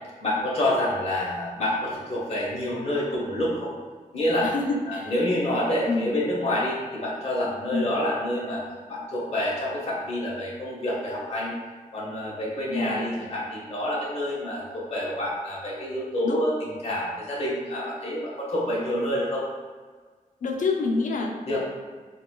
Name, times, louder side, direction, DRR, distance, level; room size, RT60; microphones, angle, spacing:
voice 1, 0.2-3.7 4.1-4.5 4.9-8.6 8.9-11.5 11.9-19.4 21.5-21.6, left 1 dB, 45° left, -5 dB, 1.0 m, -27 dB
voice 2, 4.4-5.1 5.9-6.2 7.7-8.0 12.7-13.1 16.2-16.4 20.4-21.6, left 3 dB, 65° left, 2 dB, 0.5 m, -27 dB
4.1 x 2.2 x 2.3 m, 1.5 s
wide cardioid pair, 95°, 14 cm